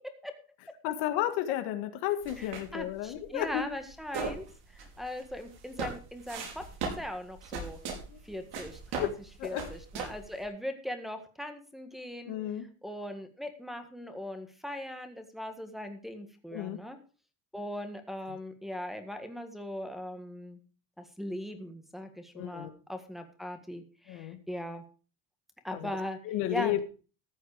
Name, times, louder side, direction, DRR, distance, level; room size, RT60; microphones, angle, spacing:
voice 1, 0.8-3.6 8.1-8.2 9.0-9.1 9.4-9.6 12.3-12.7 16.5-16.8 22.3-22.7 24.1-24.4 25.7-25.9 26.3-26.8, left 13 dB, 85° left, 8 dB, 1.7 m, -32 dB
sound 1, 2.2-10.4, right 4 dB, 75° right, 5.1 m, -40 dB
voice 2, 2.4-7.8 8.2-9.1 9.4-17.0 17.5-20.6 21.0-24.8 25.6-26.2 26.5-26.8, left 1 dB, ahead, 5 dB, 1.7 m, -40 dB
14.0 x 7.8 x 5.0 m, 0.36 s
cardioid pair, 130°, 40 cm